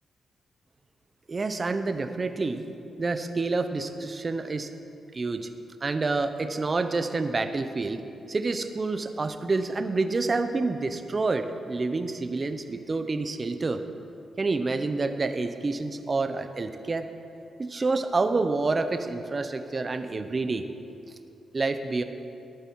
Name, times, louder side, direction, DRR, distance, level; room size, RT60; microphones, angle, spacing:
voice 1, 1.3-2.7 3.0-4.7 5.1-5.5 5.8-8.0 8.3-13.8 14.4-17.1 17.6-20.6 21.5-22.0, right 3 dB, 30° right, 8 dB, 0.7 m, -28 dB
14.0 x 10.5 x 4.7 m, 2.6 s
cardioid pair, 120°, 0 cm